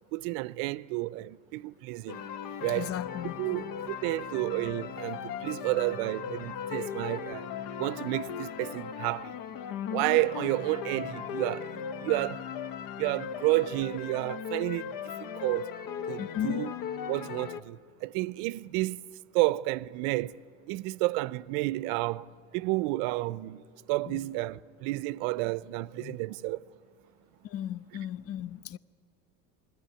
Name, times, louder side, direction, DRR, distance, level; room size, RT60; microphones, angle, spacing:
voice 1, 0.1-2.3 2.6-2.9 3.4-7.5 7.8-9.4 9.9-12.5 13.0-15.7 16.1-16.7 17.1-19.0 19.3-20.4 20.7-26.7, right 20 dB, 80° right, 0.6 m, -31 dB
sound 1, 2.1-17.6, left 8 dB, 55° left, 0.9 m, -38 dB
voice 2, 2.7-3.6 16.2-16.7 24.1-24.2 26.0-26.2 27.4-28.8, left 11 dB, 35° left, 0.5 m, -36 dB
21.5 x 14.0 x 10.0 m
supercardioid pair, 105°, 42 cm